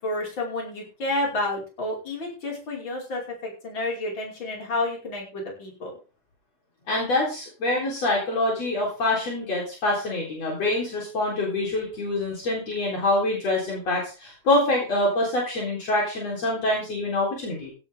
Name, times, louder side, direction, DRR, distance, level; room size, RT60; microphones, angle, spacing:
voice 1, 0.0-5.9, left 2 dB, 35° left, -1 dB, 5.9 m, -30 dB
voice 2, 6.9-17.7, left 2 dB, 55° left, -2 dB, 5.0 m, -25 dB
16.5 x 11.0 x 3.6 m, 0.33 s
omnidirectional pair, 3.5 m